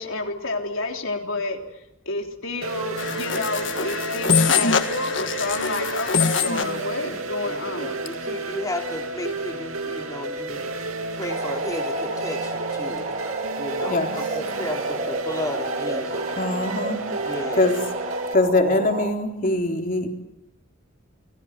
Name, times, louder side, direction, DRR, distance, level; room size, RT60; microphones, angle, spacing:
voice 1, 0.0-7.9 13.8-14.2, left 3 dB, 75° left, 2 dB, 3.5 m, -30 dB
sound 1, 2.6-18.3, right 2 dB, 90° right, 2.8 m, -32 dB
sound 2, 3.0-6.8, left 5 dB, 60° left, 1.8 m, -23 dB
voice 2, 7.5-10.6 11.2-13.1 13.6-16.3 17.3-17.7, left 1 dB, 15° left, 1 dB, 3.0 m, -33 dB
sound 3, 11.3-19.1, right 2 dB, 40° right, 3.7 m, -31 dB
voice 3, 16.4-17.0 17.6-17.8 18.3-20.2, left 2 dB, 40° left, 3 dB, 3.8 m, -22 dB
29.0 x 20.5 x 9.4 m, 0.90 s
head